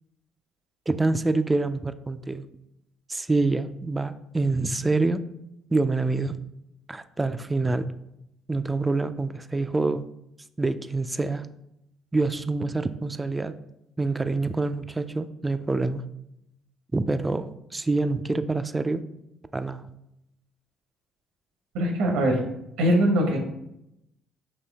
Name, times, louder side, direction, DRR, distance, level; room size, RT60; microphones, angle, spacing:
voice 1, 0.9-2.4 3.1-5.2 5.7-6.4 6.9-7.9 8.5-10.1 10.6-11.5 12.1-13.5 14.0-16.0 16.9-19.0 19.5-19.9, right 3 dB, 20° right, 11 dB, 0.3 m, -26 dB
voice 2, 21.7-22.4 22.8-23.4, equal, 80° right, 2 dB, 0.8 m, -21 dB
4.3 x 2.8 x 3.4 m, 0.82 s
hypercardioid pair, 60°, 0 cm